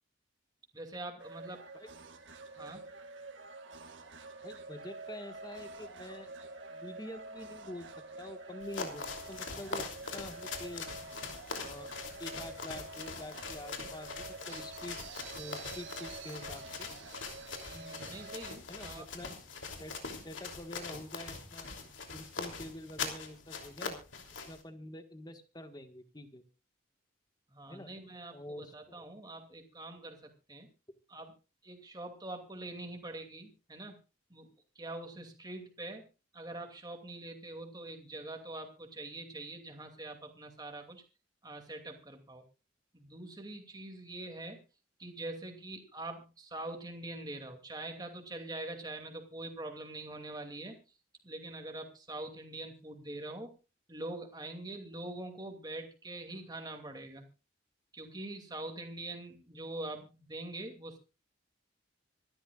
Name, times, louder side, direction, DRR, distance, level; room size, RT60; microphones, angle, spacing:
voice 1, 0.7-1.7 2.6-2.8 17.6-19.1 27.5-30.7 31.1-31.3 31.6-34.0 34.3-34.5 34.8-36.0 36.3-41.0 41.4-42.4 42.9-44.6 45.0-50.8 51.2-53.5 53.9-57.3 57.9-61.0, right 2 dB, 20° right, 4 dB, 2.5 m, -44 dB
sound 1, 1.2-18.6, right 3 dB, 75° right, 2.1 m, -47 dB
voice 2, 4.4-6.3 6.7-7.9 8.2-10.9 11.6-11.9 12.2-15.0 15.3-16.9 18.7-21.7 22.1-24.0 24.3-26.4 27.7-27.9 28.3-29.1, left 1 dB, 20° left, 8 dB, 1.5 m, -46 dB
sound 2, 8.6-24.6, left 4 dB, 80° left, 3.1 m, -42 dB
26.0 x 12.5 x 2.4 m, 0.31 s
head